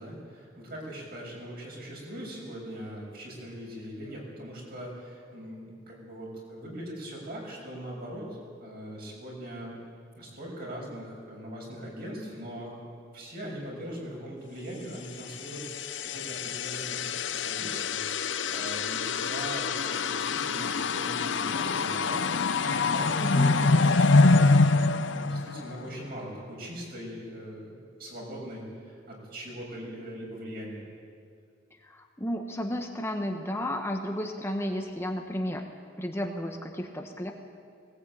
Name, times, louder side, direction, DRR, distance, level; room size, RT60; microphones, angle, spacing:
voice 1, 0.0-8.3 8.6-9.8 10.2-12.8 13.1-30.8, equal, 55° right, -2 dB, 7.1 m, -41 dB
sound 1, 15.3-26.0, left 3 dB, 80° left, 0.8 m, -25 dB
voice 2, 23.2-23.9 31.8-35.6 36.0-37.3, equal, 15° left, 3 dB, 1.2 m, -33 dB
19.0 x 19.0 x 9.0 m, 2.2 s
head